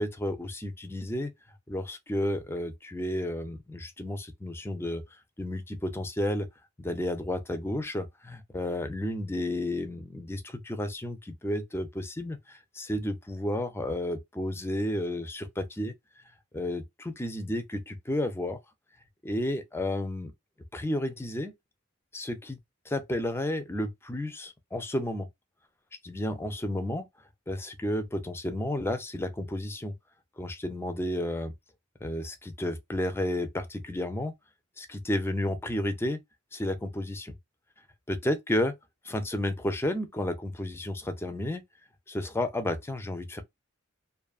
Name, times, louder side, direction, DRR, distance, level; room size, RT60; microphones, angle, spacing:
voice 1, 0.0-1.3 1.7-5.0 5.4-6.5 6.8-15.9 16.5-18.6 19.2-20.3 20.7-21.5 22.1-22.6 22.9-25.3 26.0-27.1 27.5-29.9 30.4-31.5 32.0-34.3 34.8-36.2 36.5-37.4 38.1-38.7 39.0-41.6 42.1-43.4, left 1 dB, 10° left, 0.4 m, -32 dB
2.5 x 2.4 x 2.3 m
head